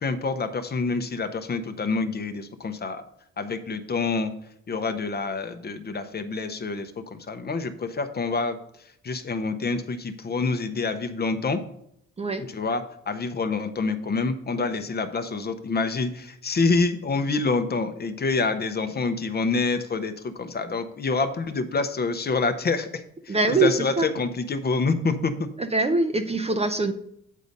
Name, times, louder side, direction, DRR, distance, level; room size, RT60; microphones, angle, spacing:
voice 1, 0.0-3.0 3.4-4.3 4.7-8.6 9.0-11.6 12.5-25.5, left 4 dB, 35° left, 9 dB, 0.7 m, -27 dB
voice 2, 23.3-24.1 25.6-26.9, right 2 dB, 20° right, 8 dB, 0.5 m, -23 dB
8.3 x 4.0 x 5.2 m, 0.73 s
cardioid pair, 90°, 30 cm